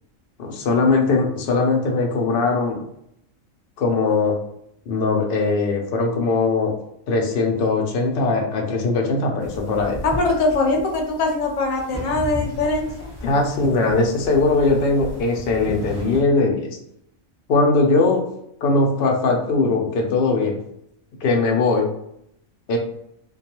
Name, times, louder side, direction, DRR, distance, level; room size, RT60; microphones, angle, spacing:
voice 1, 0.4-2.8 3.8-4.4 4.9-6.7 7.1-10.0 13.2-16.8 17.5-18.2 18.6-20.6 21.2-21.9 22.7-22.8, left 3 dB, 60° left, 1 dB, 0.6 m, -20 dB
hg tape noise, 9.4-16.2, left 1 dB, 5° right, 0.8 m, -35 dB
voice 2, 10.0-13.1, left 2 dB, 80° left, 2 dB, 1.0 m, -22 dB
2.3 x 2.3 x 2.8 m, 0.75 s
omnidirectional pair, 1.4 m